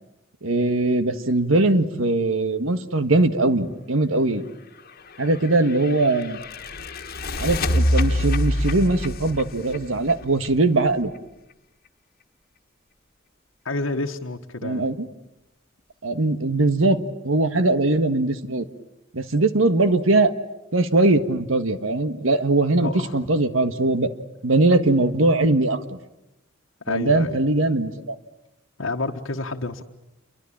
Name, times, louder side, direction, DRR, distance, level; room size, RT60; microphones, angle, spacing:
voice 1, 0.4-4.4 5.2-6.4 7.4-11.1 14.6-15.1 16.0-17.0 17.2-18.7 19.1-20.3 20.7-24.1 24.4-26.0 26.9-28.1, right 2 dB, 85° right, 1.7 m, -21 dB
sound 1, 5.1-10.8, left 1 dB, 50° left, 1.6 m, -26 dB
voice 2, 13.6-14.9 22.8-23.2 26.8-27.4 28.8-29.8, left 2 dB, 80° left, 1.5 m, -29 dB
28.5 x 24.0 x 8.8 m
head